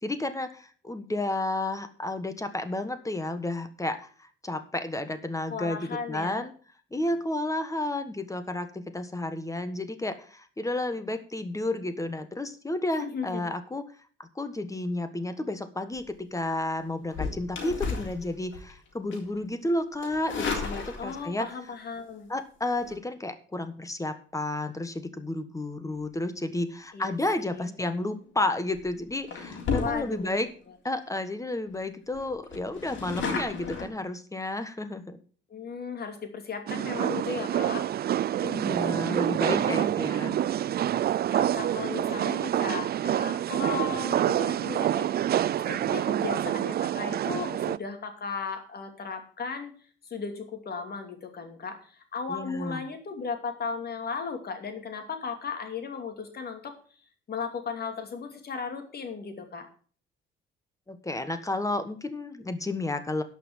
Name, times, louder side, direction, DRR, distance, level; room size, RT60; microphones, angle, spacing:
voice 1, 0.0-5.8 6.1-6.5 6.9-13.8 14.2-21.5 22.3-30.5 30.8-35.2 38.4-40.3 52.3-52.9 60.9-63.2, left 2 dB, 15° left, 10 dB, 1.4 m, -31 dB
voice 2, 5.5-6.4 13.0-13.4 21.0-22.3 26.9-27.7 29.7-30.4 35.5-37.9 39.5-40.4 41.3-45.4 45.7-49.7 50.0-56.7 57.3-59.6, left 5 dB, 50° left, 5 dB, 2.8 m, -36 dB
sound 1, 17.1-18.7 19.1-19.4 20.0-21.4 22.7-22.9 28.0-28.2 28.7-28.9 29.3-30.4 30.9-31.0 31.2-31.3 31.7-31.8 32.1-33.9, left 5 dB, 75° left, 3.5 m, -33 dB
sound 2, 36.7-47.8, right 11 dB, 50° right, 0.4 m, -27 dB
11.0 x 6.0 x 7.4 m, 0.43 s
cardioid pair, 90°, 20 cm